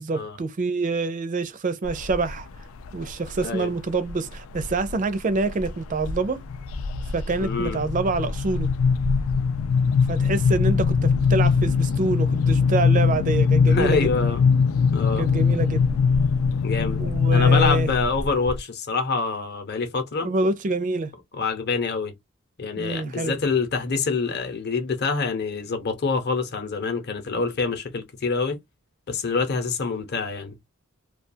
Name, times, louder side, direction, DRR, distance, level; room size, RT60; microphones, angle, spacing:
voice 1, 0.0-2.5 2.9-6.4 7.1-8.7 10.1-14.2 15.2-15.9 17.0-17.9 20.2-21.1 22.8-23.4, right 3 dB, 35° right, 0.4 m, -26 dB
sound 1, 1.8-2.4 2.9-3.4 4.1-4.9 5.3-5.7 6.0-18.6, left 5 dB, 70° left, 0.3 m, -22 dB
voice 2, 7.4-7.8 13.7-14.5 14.9-15.3 16.6-17.0 17.3-20.3 21.3-22.1 22.6-28.6 29.1-30.6, left 4 dB, 50° left, 0.7 m, -26 dB
2.3 x 2.3 x 2.5 m
head